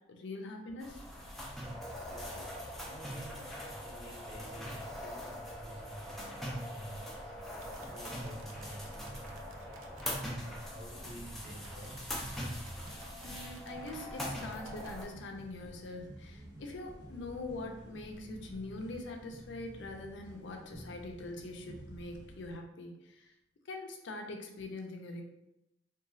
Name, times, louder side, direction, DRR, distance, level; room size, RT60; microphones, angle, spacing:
voice 1, 0.1-1.0 13.2-23.3 23.7-25.2, left 2 dB, 65° left, 3 dB, 0.4 m, -43 dB
sound 1, 0.8-15.1, equal, ahead, 0.4 m, -42 dB
voice 2, 1.9-2.6 2.8-12.0, right 1 dB, 60° right, -9 dB, 0.8 m, -51 dB
sound 2, 7.6-10.1 11.6-15.0, right 4 dB, 85° right, 0.4 m, -59 dB
sound 3, 10.7-22.6, right 1 dB, 20° right, 0.7 m, -51 dB
2.9 x 2.3 x 2.5 m, 0.88 s
head